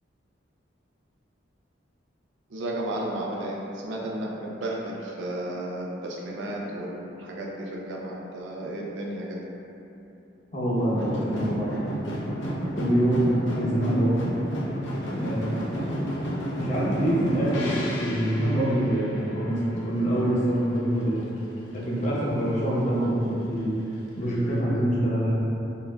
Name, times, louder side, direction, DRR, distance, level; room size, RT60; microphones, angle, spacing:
voice 1, 2.5-9.4, right 1 dB, 85° right, -3 dB, 0.5 m, -33 dB
voice 2, 10.5-11.9 12.7-14.2 15.1-15.7 16.5-17.7 18.0-21.2 21.7-23.7 24.2-25.4, right 1 dB, 40° left, -7 dB, 0.7 m, -25 dB
sound 1, 10.8-20.8 21.0-21.8 22.2-22.3, equal, 80° left, 0.6 m, -32 dB
4.6 x 2.6 x 2.2 m, 2.9 s
head